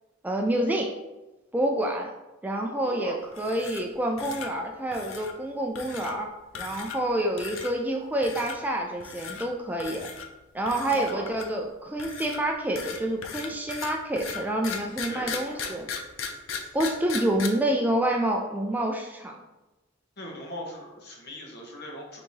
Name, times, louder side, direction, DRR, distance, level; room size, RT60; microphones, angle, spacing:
voice 1, 0.2-0.9 1.5-2.1 2.4-6.3 6.5-10.1 10.5-15.9 16.7-19.4, right 1 dB, 10° right, 1 dB, 0.3 m, -28 dB
voice 2, 2.8-3.4 10.9-11.4 15.1-15.7 20.2-22.2, equal, 55° left, -1 dB, 1.0 m, -39 dB
sound 1, 3.3-3.9 4.2-4.5 4.9-5.3 5.8-6.1 6.5-7.1 7.4-7.7 8.2-8.6 9.0-9.5 9.8-10.3 10.7-11.6 12.0-17.5, left 6 dB, 85° left, 0.5 m, -37 dB
4.6 x 3.5 x 2.6 m, 1.1 s
head